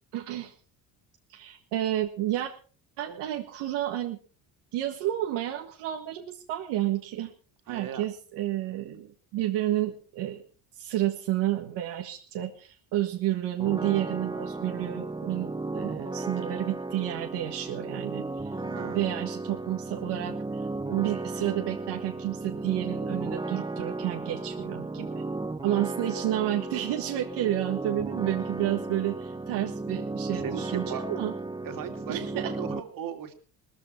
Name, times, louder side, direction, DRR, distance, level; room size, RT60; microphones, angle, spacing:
voice 1, 0.1-0.5 1.3-2.5 3.0-4.2 4.7-7.3 7.7-10.4 10.8-18.5 18.8-25.2 25.6-31.3 32.1-32.5, right 14 dB, 80° right, 3 dB, 1.8 m, -30 dB
voice 2, 7.7-8.0 8.7-9.0 18.5-19.0 28.6-28.7 30.4-31.1 31.6-33.3, right 8 dB, 55° right, 6 dB, 2.9 m, -37 dB
sound 1, 13.6-32.8, right 3 dB, 10° right, 1.0 m, -35 dB
18.5 x 14.0 x 4.5 m, 0.38 s
cardioid pair, 115°, 40 cm